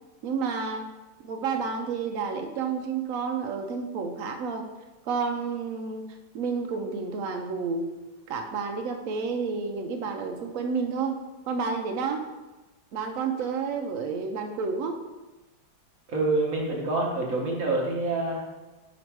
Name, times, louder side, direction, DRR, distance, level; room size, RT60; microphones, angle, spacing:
voice 1, 0.2-0.8 1.2-4.7 5.1-6.0 6.3-7.9 8.3-11.2 11.5-12.3 12.9-15.0, right 5 dB, 75° right, 4 dB, 0.7 m, -30 dB
voice 2, 16.1-18.4, right 2 dB, 50° right, -2 dB, 1.3 m, -26 dB
5.3 x 5.0 x 4.6 m, 1.1 s
omnidirectional pair, 2.2 m